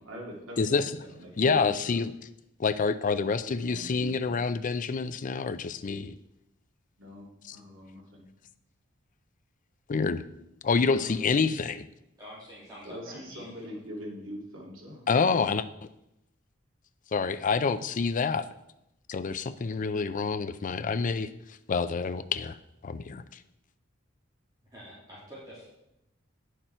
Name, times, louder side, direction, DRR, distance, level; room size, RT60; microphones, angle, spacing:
voice 1, 0.0-2.0 3.1-4.4 7.0-8.3 10.8-11.6 12.8-15.1, equal, 70° right, -2 dB, 2.5 m, -42 dB
voice 2, 0.6-0.9 1.4-2.1 2.6-6.1 7.5-7.6 9.9-10.2 10.6-11.8 15.1-15.7 17.1-18.5 19.1-21.3 21.7-22.6 22.8-23.2, left 5 dB, 40° left, 13 dB, 0.4 m, -27 dB
voice 3, 12.2-13.7 24.6-25.6, equal, 20° right, -8 dB, 2.4 m, -47 dB
9.0 x 6.6 x 4.4 m, 0.85 s
head